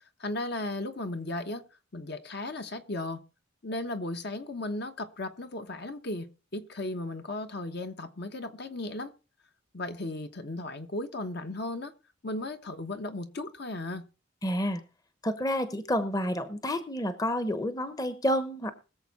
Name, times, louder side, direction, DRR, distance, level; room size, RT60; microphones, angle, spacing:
voice 1, 0.2-1.6 1.9-3.2 3.6-9.1 9.7-11.9 12.2-14.1, left 2 dB, 55° left, 1.1 m, -35 dB
voice 2, 14.4-14.8 15.2-18.7, equal, 20° left, 0.9 m, -29 dB
21.0 x 7.2 x 4.2 m
head